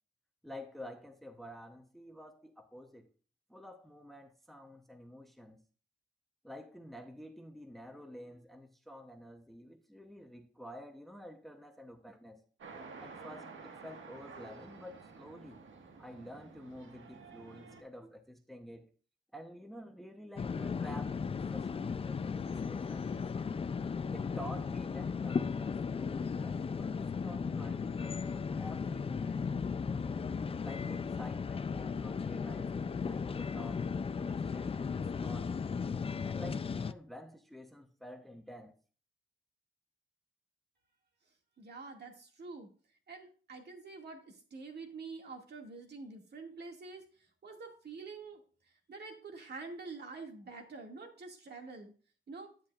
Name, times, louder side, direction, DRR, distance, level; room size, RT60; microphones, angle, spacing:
voice 1, 0.4-3.1 3.5-5.6 6.4-12.4 13.0-15.6 16.0-18.9 19.3-23.6 24.1-29.4 30.6-33.9 34.2-35.6 36.2-38.7, equal, ahead, 0.8 m, -50 dB
sound 1, 12.6-17.8, right 4 dB, 85° right, 1.6 m, -51 dB
sound 2, 20.4-36.9, left 5 dB, 30° left, 0.4 m, -36 dB
voice 2, 41.6-42.7 43.1-48.4 48.9-51.9 52.3-52.5, right 4 dB, 55° right, 2.1 m, -47 dB
10.0 x 8.9 x 2.4 m
wide cardioid pair, 165°, 20 cm